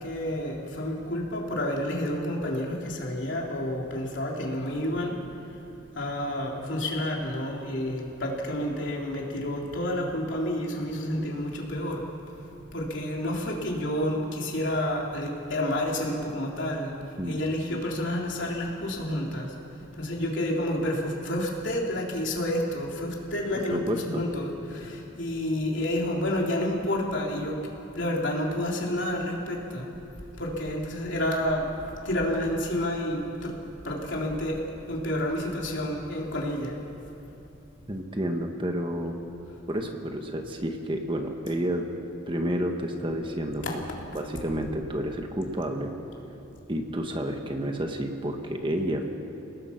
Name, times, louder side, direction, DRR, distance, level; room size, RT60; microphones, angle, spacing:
voice 1, 0.0-5.6 5.9-19.6 19.9-27.6 27.9-29.9 30.3-33.6 33.8-37.1 43.6-43.8, left 1 dB, 65° left, -2 dB, 3.6 m, -30 dB
voice 2, 23.7-24.2 37.9-39.1 39.7-41.8 42.3-43.6 44.1-45.9 46.7-49.0, equal, 25° right, 3 dB, 1.5 m, -30 dB
30.0 x 19.0 x 5.9 m, 2.8 s
head